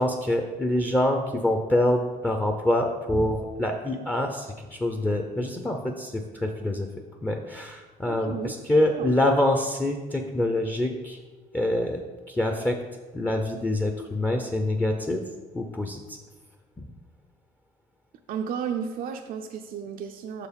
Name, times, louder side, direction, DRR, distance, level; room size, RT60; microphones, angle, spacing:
voice 1, 0.0-6.9 7.2-11.2 11.5-12.8 13.1-15.2 15.5-16.0, left 1 dB, 10° left, 4 dB, 0.5 m, -25 dB
voice 2, 8.0-9.2 18.3-20.5, right 7 dB, 60° right, 4 dB, 0.5 m, -33 dB
6.4 x 4.7 x 5.1 m, 1.3 s
cardioid pair, 110°, 17 cm